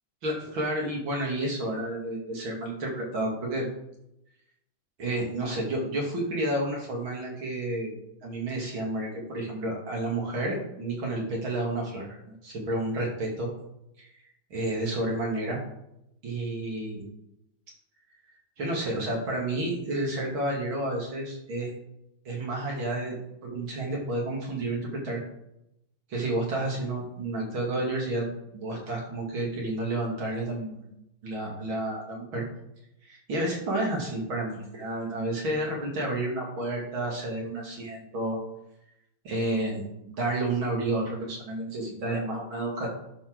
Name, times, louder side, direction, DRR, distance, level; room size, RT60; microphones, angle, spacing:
voice 1, 0.2-3.7 5.0-7.9 8.2-12.1 12.4-13.5 14.0-14.1 14.5-15.6 16.2-17.0 18.6-21.7 22.2-23.2 23.4-25.2 26.1-28.3 28.5-30.8 31.2-32.4 33.0-38.4 39.2-42.9, right 1 dB, 75° right, -2 dB, 3.4 m, -30 dB
11.5 x 4.7 x 6.2 m, 0.83 s
omnidirectional pair, 2.2 m